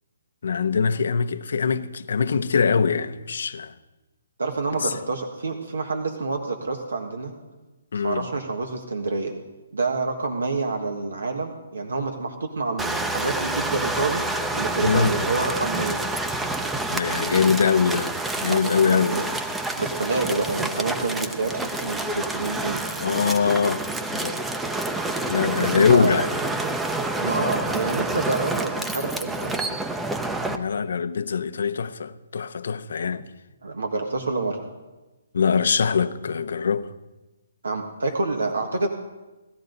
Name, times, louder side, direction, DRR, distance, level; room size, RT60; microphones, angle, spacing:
voice 1, 0.4-3.7 4.8-5.0 7.9-8.3 14.8-15.2 16.9-18.1 18.4-19.2 23.0-23.8 24.1-24.4 25.2-26.3 30.5-33.3 35.3-36.9, left 6 dB, 70° left, 0.8 m, -23 dB
voice 2, 4.4-7.3 7.9-9.3 9.7-14.2 14.5-16.0 18.4-19.2 19.8-22.8 25.5-26.2 27.2-29.7 33.6-34.7 37.6-38.9, right 3 dB, 90° right, 1.6 m, -27 dB
sound 1, 12.8-30.6, right 2 dB, 5° right, 0.7 m, -28 dB
18.5 x 13.0 x 4.0 m
hypercardioid pair, 150°, 0 cm